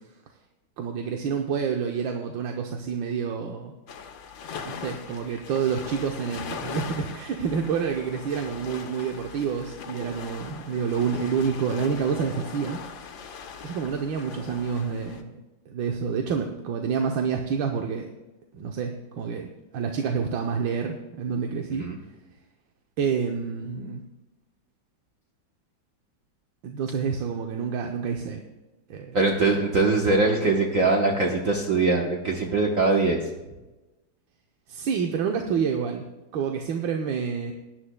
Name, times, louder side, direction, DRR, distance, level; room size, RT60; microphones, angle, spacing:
voice 1, 0.8-3.7 4.6-12.8 13.6-15.4 15.7-18.1 18.5-21.8 23.0-24.0 26.6-28.4 28.9-29.2 34.7-36.0 36.3-37.5, right 6 dB, 80° right, 3 dB, 1.6 m, -28 dB
sound 1, 3.9-15.2, left 6 dB, 85° left, 1.7 m, -40 dB
voice 2, 29.1-33.2, right 3 dB, 50° right, 0 dB, 1.3 m, -22 dB
18.0 x 11.0 x 2.2 m, 1.1 s
omnidirectional pair, 2.0 m